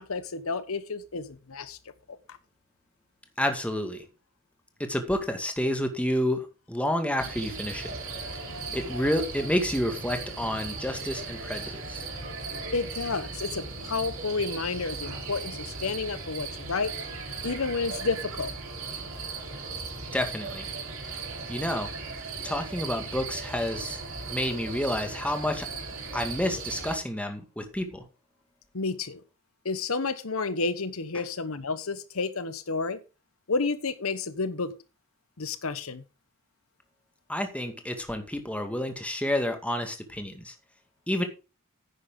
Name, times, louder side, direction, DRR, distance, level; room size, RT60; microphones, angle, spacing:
voice 1, 0.0-1.8 12.7-16.9 17.4-18.5 28.7-29.2 29.6-33.0 33.5-34.7 35.4-36.0, left 4 dB, 80° left, 1.0 m, -30 dB
voice 2, 3.4-4.0 4.8-7.9 8.7-12.0 20.1-20.7 21.5-21.9 22.4-24.0 24.3-25.7 26.1-28.0 37.3-40.5 41.1-41.2, left 1 dB, 5° left, 1.9 m, -29 dB
sound 1, 7.2-27.0, right 4 dB, 80° right, 4.6 m, -37 dB
11.0 x 9.5 x 3.8 m
head